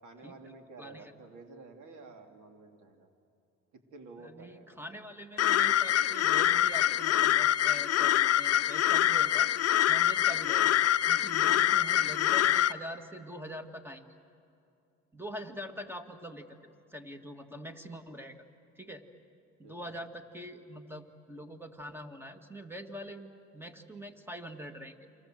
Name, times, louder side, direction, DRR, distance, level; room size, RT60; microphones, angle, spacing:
voice 1, 0.0-3.1 3.9-4.8 19.6-19.9, right 3 dB, 75° right, 4 dB, 3.2 m, -51 dB
voice 2, 0.8-1.1 4.2-9.5 9.9-10.8 11.1-14.1 15.1-16.6 16.9-18.4 18.8-19.0 19.6-25.0, equal, 5° right, 6 dB, 2.1 m, -44 dB
sound 1, 5.4-12.7, left 11 dB, 55° left, 0.6 m, -25 dB
29.0 x 25.0 x 7.8 m, 2.6 s
cardioid pair, 90°, 30 cm